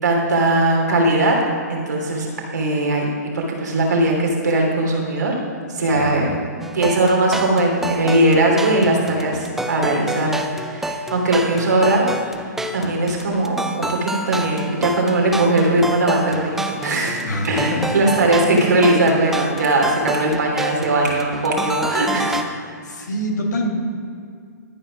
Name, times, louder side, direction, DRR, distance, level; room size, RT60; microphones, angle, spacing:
voice 1, 0.0-1.4 1.7-3.1 3.3-5.5 5.7-6.3 6.7-12.0 12.7-22.4, right 2 dB, 80° right, -1 dB, 3.0 m, -19 dB
voice 2, 5.9-6.4 17.2-18.0 22.8-23.7, equal, 85° left, 1 dB, 2.4 m, -26 dB
sound 1, 6.6-22.4, right 1 dB, 5° right, 0.5 m, -28 dB
13.0 x 5.7 x 6.0 m, 2.3 s
hypercardioid pair, 135°, 9 cm